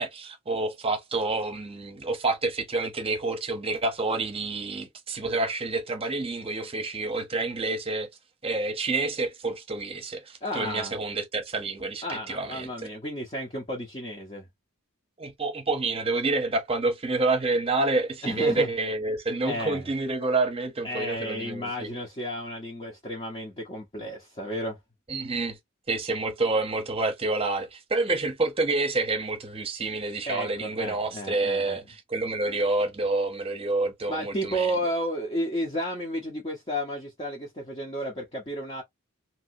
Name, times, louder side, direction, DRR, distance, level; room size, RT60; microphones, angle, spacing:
voice 1, 0.0-8.1 8.4-12.9 15.2-21.9 25.1-25.6 25.9-34.7, right 3 dB, 30° right, 0.8 m, -28 dB
voice 2, 10.4-11.0 12.0-14.5 18.2-18.7 19.4-19.9 20.8-24.8 30.3-31.8 34.1-38.8, equal, 30° left, 0.8 m, -32 dB
2.9 x 2.7 x 2.7 m
head